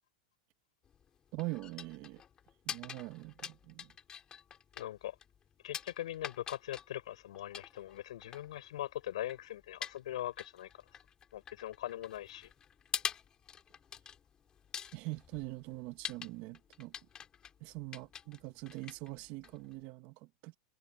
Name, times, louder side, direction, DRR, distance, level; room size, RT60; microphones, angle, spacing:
sound 1, 0.8-19.9, left 8 dB, 20° left, 4.7 m, -46 dB
voice 1, 1.3-2.2 2.7-3.9 14.9-16.9 17.6-20.5, right 20 dB, 45° right, 2.3 m, -43 dB
voice 2, 4.8-5.1 5.6-10.7 11.3-12.5, left 13 dB, 85° left, 6.2 m, -41 dB
supercardioid pair, 145°, 3 cm